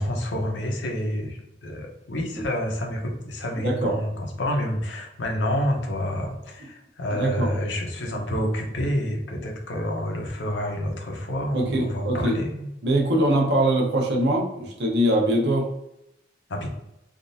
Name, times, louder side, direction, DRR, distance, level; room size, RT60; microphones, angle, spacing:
voice 1, 0.0-12.7 16.5-16.7, left 1 dB, 90° left, 1 dB, 0.7 m, -28 dB
voice 2, 3.6-3.9 7.1-7.5 11.5-12.3 12.8-15.6, right 1 dB, 70° right, 0 dB, 0.7 m, -22 dB
3.6 x 2.4 x 2.6 m, 0.85 s
head